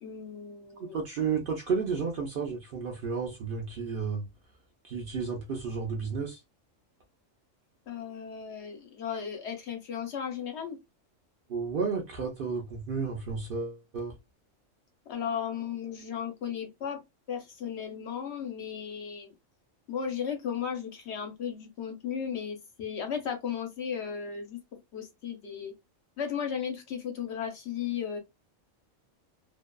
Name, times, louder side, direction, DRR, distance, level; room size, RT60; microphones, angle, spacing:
voice 1, 0.0-1.0 7.9-10.8 15.1-17.0 17.3-19.3 19.9-24.6 24.9-25.7 26.2-28.2, left 7 dB, 65° left, 0.9 m, -35 dB
voice 2, 0.9-4.3 4.8-6.4 11.5-14.1, right 5 dB, 55° right, 0.7 m, -32 dB
2.5 x 2.2 x 2.2 m
omnidirectional pair, 1.3 m